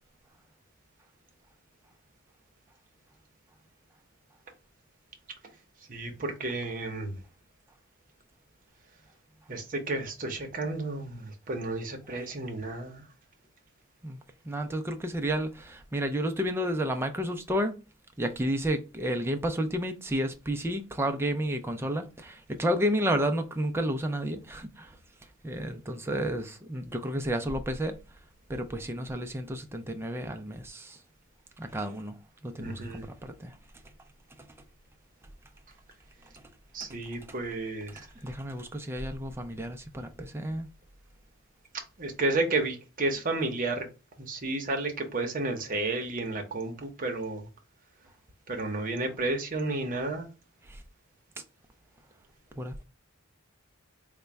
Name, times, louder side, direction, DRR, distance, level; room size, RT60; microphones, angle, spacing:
voice 1, 5.9-7.1 9.5-13.0 32.6-33.1 36.7-38.1 42.0-43.8 44.2-47.5 48.5-50.3, right 2 dB, 40° right, 0.8 m, -32 dB
voice 2, 14.5-17.8 18.2-24.9 25.4-28.0 28.5-31.0 31.6-32.2 32.4-33.5 38.0-40.7 50.7-50.8 52.6-52.8, equal, 10° right, 0.4 m, -31 dB
4.0 x 2.2 x 3.3 m
head